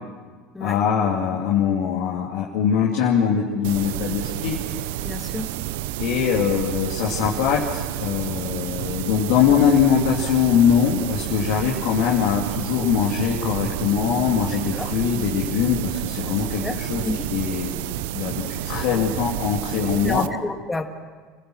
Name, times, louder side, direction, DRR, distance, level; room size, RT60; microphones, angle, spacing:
voice 1, 0.6-4.6 6.0-17.7 18.1-20.3, left 8 dB, 70° left, -3 dB, 2.5 m, -22 dB
sound 1, 3.6-20.3, right 13 dB, 75° right, 0.7 m, -30 dB
voice 2, 5.0-5.5 14.7-14.9 16.3-16.4 16.6-16.8 17.0-17.3 20.0-20.8, left 2 dB, 15° left, 5 dB, 2.0 m, -29 dB
27.5 x 15.5 x 6.4 m, 1.4 s
hypercardioid pair, 90°, 0 cm